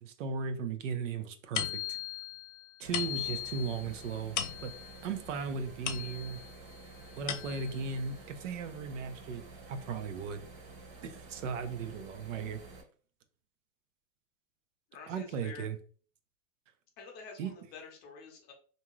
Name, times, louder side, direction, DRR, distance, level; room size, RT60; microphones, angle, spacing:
voice 1, 0.0-2.0 2.8-4.7 5.0-6.4 7.2-10.5 11.0-12.6 15.1-15.8 17.4-17.5, right 5 dB, 80° right, 9 dB, 0.6 m, -37 dB
sound 1, 1.6-6.5 7.0-7.9, left 10 dB, 75° left, 0.6 m, -38 dB
sound 2, 2.8-12.8, right 3 dB, 50° right, 1.0 m, -50 dB
voice 2, 14.9-15.7 17.0-18.5, left 4 dB, 25° left, 2 dB, 0.6 m, -48 dB
2.6 x 2.2 x 3.0 m, 0.42 s
supercardioid pair, 150°, 37 cm